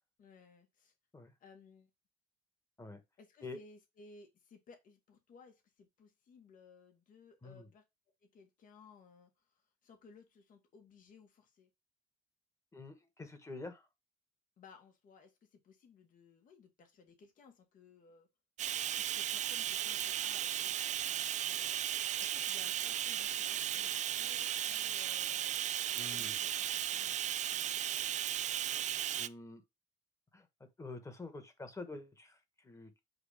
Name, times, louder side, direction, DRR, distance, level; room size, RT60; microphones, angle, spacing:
voice 1, 0.2-0.9 1.4-1.9 3.2-7.8 8.2-11.7 14.6-18.3 18.9-21.7 22.2-25.6 26.1-28.0, left 4 dB, 50° left, 1.8 m, -60 dB
voice 2, 12.7-13.9 25.9-26.4 29.1-29.6 30.3-30.5 30.8-33.0, left 3 dB, 15° left, 1.6 m, -47 dB
Bathtub (filling or washing), 18.6-29.3, right 11 dB, 45° right, 0.4 m, -35 dB
8.1 x 2.7 x 5.1 m
cardioid pair, 110°, 17 cm